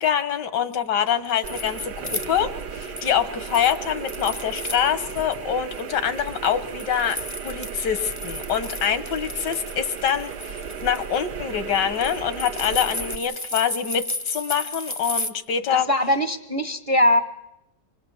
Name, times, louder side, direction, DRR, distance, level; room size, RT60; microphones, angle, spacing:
voice 1, 0.0-7.2 7.4-15.9, left 8 dB, 85° left, 11 dB, 1.8 m, -25 dB
sound 1, 1.1-3.1 3.5-5.4 5.7-15.3, left 2 dB, 15° left, 0.6 m, -34 dB
sound 2, 1.4-13.2, right 6 dB, 75° right, 1.6 m, -35 dB
voice 2, 15.7-17.2, left 1 dB, 30° right, 9 dB, 0.7 m, -21 dB
25.5 x 21.0 x 7.1 m, 0.87 s
omnidirectional pair, 1.8 m